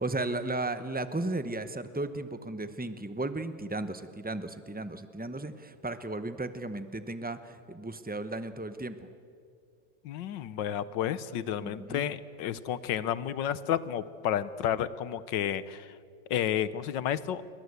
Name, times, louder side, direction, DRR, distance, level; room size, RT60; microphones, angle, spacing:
voice 1, 0.0-9.1 11.6-12.1, right 2 dB, 15° right, 11 dB, 0.4 m, -35 dB
voice 2, 10.0-15.9 16.3-17.4, left 10 dB, 75° left, 16 dB, 1.5 m, -31 dB
28.5 x 23.0 x 8.1 m, 2.3 s
omnidirectional pair, 2.0 m